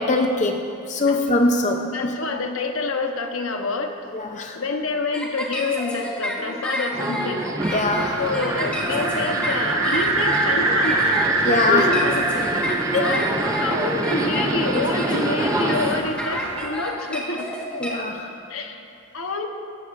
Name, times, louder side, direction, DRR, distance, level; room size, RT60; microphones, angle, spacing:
voice 1, 0.0-2.2 4.1-4.6 7.7-8.2 11.4-11.9 12.9-13.0 17.8-18.3, left 2 dB, 35° left, 3 dB, 0.5 m, -22 dB
voice 2, 1.9-3.9 4.5-7.5 8.2-11.1 11.6-12.2 12.5-13.3 13.6-17.5 18.5-18.8 19.1-19.5, left 3 dB, 90° left, 4 dB, 1.0 m, -27 dB
sound 1, 5.1-17.9, equal, 5° left, 1.4 m, -30 dB
Subway metro underground, 6.9-16.0, right 1 dB, 15° right, 0.5 m, -27 dB
sound 2, 7.6-16.7, right 3 dB, 85° right, 1.2 m, -26 dB
16.5 x 14.0 x 2.5 m, 2.7 s
head